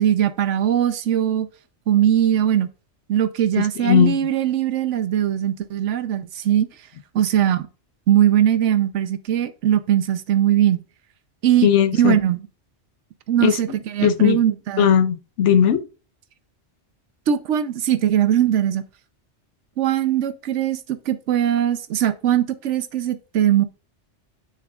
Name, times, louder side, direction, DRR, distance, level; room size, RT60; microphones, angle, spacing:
voice 1, 0.0-1.5 1.9-2.7 3.1-6.7 7.1-7.7 8.1-10.8 11.4-12.4 13.3-14.9 17.3-18.8 19.8-23.6, right 10 dB, 85° right, 1.0 m, -20 dB
voice 2, 3.5-4.2 11.6-12.2 13.4-13.6 14.0-14.4 14.8-15.9, left 9 dB, 90° left, 1.1 m, -17 dB
9.4 x 6.7 x 2.4 m
omnidirectional pair, 1.2 m